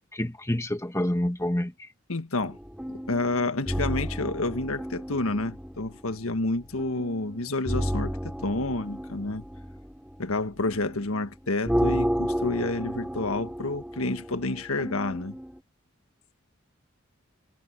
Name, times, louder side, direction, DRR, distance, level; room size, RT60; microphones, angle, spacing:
voice 1, 0.1-1.9, left 1 dB, 15° left, 1.4 m, -28 dB
voice 2, 2.1-2.6 2.9-9.4 10.2-15.4, left 2 dB, 80° left, 1.6 m, -29 dB
sound 1, 2.4-15.6, equal, 5° right, 4.9 m, -32 dB
head